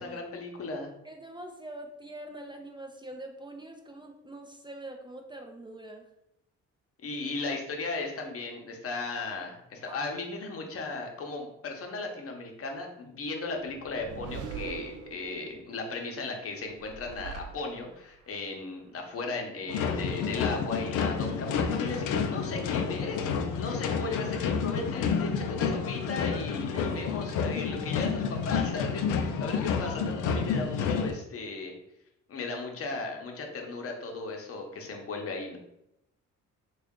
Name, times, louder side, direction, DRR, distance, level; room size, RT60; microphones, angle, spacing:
voice 1, 0.0-0.9 7.0-23.3 23.6-31.7 32.3-35.6, left 3 dB, 50° left, 2 dB, 0.9 m, -36 dB
voice 2, 1.0-6.1 9.9-10.2 26.7-26.9, right 1 dB, 15° right, 3 dB, 0.4 m, -44 dB
sound 1, 13.6-15.6 16.6-18.2, right 6 dB, 80° right, 0.5 m, -42 dB
sound 2, 19.7-31.1, left 6 dB, 85° left, 0.5 m, -30 dB
3.4 x 2.5 x 3.6 m, 0.83 s
cardioid pair, 90°, 30 cm